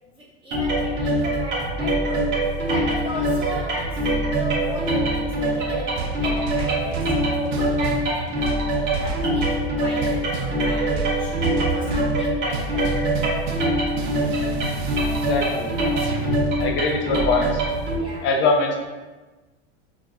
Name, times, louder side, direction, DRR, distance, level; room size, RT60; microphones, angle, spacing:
voice 1, 0.1-2.4 2.7-11.3 11.7-13.0 18.0-18.3, right 1 dB, 15° right, -4 dB, 0.3 m, -35 dB
sound 1, 0.5-18.0, right 1 dB, 35° right, 1.0 m, -24 dB
sound 2, 6.0-7.2 7.5-8.1 8.4-9.7 10.0-10.6 10.9-12.1 12.5-16.5, right 4 dB, 70° right, 0.6 m, -31 dB
voice 2, 15.1-15.7 16.6-17.6 18.2-18.8, left 3 dB, 35° left, 2 dB, 0.6 m, -22 dB
4.6 x 2.0 x 2.7 m, 1.2 s
supercardioid pair, 125°, 33 cm